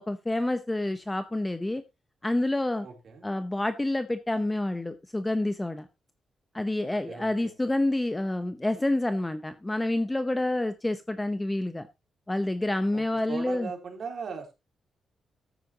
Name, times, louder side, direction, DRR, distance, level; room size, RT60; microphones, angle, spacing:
voice 1, 0.0-1.8 2.2-2.9 3.2-5.8 6.5-11.9 12.3-13.7, left 1 dB, 10° left, 0.7 m, -28 dB
voice 2, 2.8-3.2 6.8-7.5 12.9-14.5, right 5 dB, 50° right, 3.1 m, -39 dB
13.5 x 9.1 x 2.8 m
cardioid pair, 130°, 0 cm